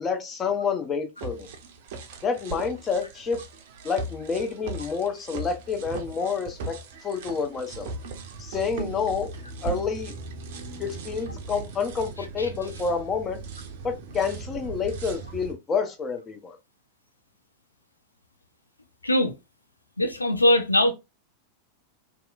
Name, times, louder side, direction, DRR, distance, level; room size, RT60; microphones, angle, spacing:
voice 1, 0.0-1.5 2.2-3.4 3.8-7.9 8.4-9.3 9.6-10.1 10.8-13.4 13.8-16.6, left 5 dB, 25° left, 0.6 m, -28 dB
sound 1, 1.2-15.5, right 3 dB, 55° right, 0.5 m, -38 dB
voice 2, 20.0-20.9, left 1 dB, 85° left, 0.4 m, -21 dB
2.8 x 2.4 x 2.2 m
figure-of-eight pair, 90°, 0 cm